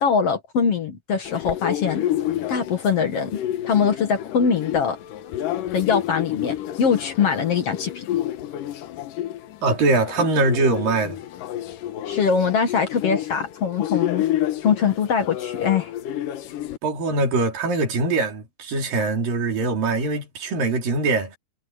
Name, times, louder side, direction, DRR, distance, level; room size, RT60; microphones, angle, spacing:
voice 1, 0.0-2.1 2.5-3.4 3.6-5.0 5.7-8.1 12.1-14.2 14.6-15.9, left 6 dB, 55° left, 2.2 m, -22 dB
sound 1, 1.3-16.8, left 12 dB, 75° left, 2.7 m, -29 dB
voice 2, 9.6-11.2 16.8-21.4, right 3 dB, 85° right, 5.4 m, -22 dB
omnidirectional pair, 3.9 m